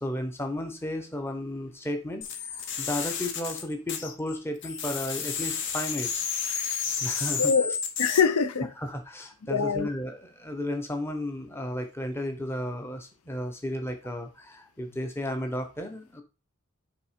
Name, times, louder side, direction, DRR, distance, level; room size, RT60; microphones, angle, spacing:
voice 1, 0.0-6.2 7.0-7.5 8.6-16.2, left 1 dB, 10° left, 0.9 m, -34 dB
sound 1, 2.2-4.4 4.6-8.2, left 6 dB, 55° left, 1.0 m, -31 dB
voice 2, 7.4-8.7 9.5-9.9, left 6 dB, 90° left, 0.6 m, -24 dB
5.8 x 3.8 x 5.1 m
head